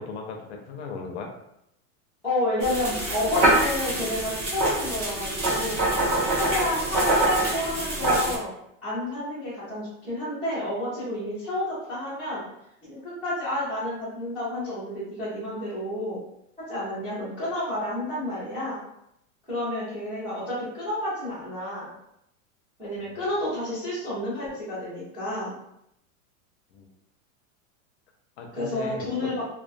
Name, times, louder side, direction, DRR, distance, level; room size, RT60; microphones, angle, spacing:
voice 1, 0.0-1.3 23.0-23.1 26.7-26.9 28.4-29.3, left 4 dB, 55° left, 2 dB, 0.5 m, -37 dB
voice 2, 2.2-5.8 6.3-8.5 8.8-12.4 12.9-16.2 16.7-18.8 19.5-21.9 22.8-25.5 28.5-29.4, left 1 dB, 5° right, -16 dB, 0.4 m, -30 dB
sound 1, 2.6-8.4, right 1 dB, 35° right, 0.7 m, -25 dB
2.3 x 2.1 x 2.5 m, 0.79 s
supercardioid pair, 165°, 41 cm